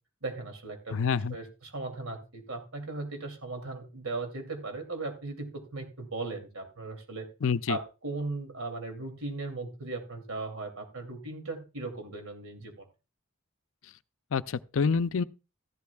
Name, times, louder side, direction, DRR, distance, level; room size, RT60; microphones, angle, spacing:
voice 1, 0.2-7.3 7.7-12.8, right 3 dB, 80° right, 2.7 m, -37 dB
voice 2, 0.9-1.4 7.4-7.8 14.3-15.2, left 5 dB, 70° left, 0.5 m, -27 dB
14.0 x 11.5 x 2.3 m
head